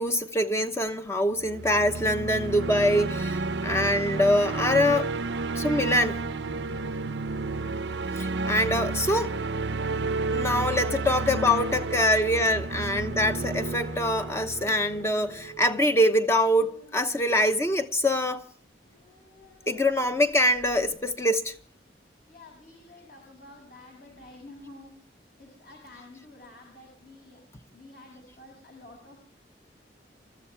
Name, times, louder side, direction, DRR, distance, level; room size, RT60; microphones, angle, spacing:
voice 1, 0.0-5.1 5.5-6.2 8.2-9.4 10.3-18.4 19.7-21.5, left 1 dB, 15° left, 0.9 m, -24 dB
sound 1, 1.4-15.6, right 3 dB, 80° right, 0.7 m, -31 dB
voice 2, 10.2-13.0 22.3-24.9 25.4-27.4 27.7-29.2, left 2 dB, 55° left, 6.2 m, -50 dB
sound 2, 12.1-22.1, right 2 dB, 85° left, 7.0 m, -53 dB
27.5 x 14.0 x 3.3 m
head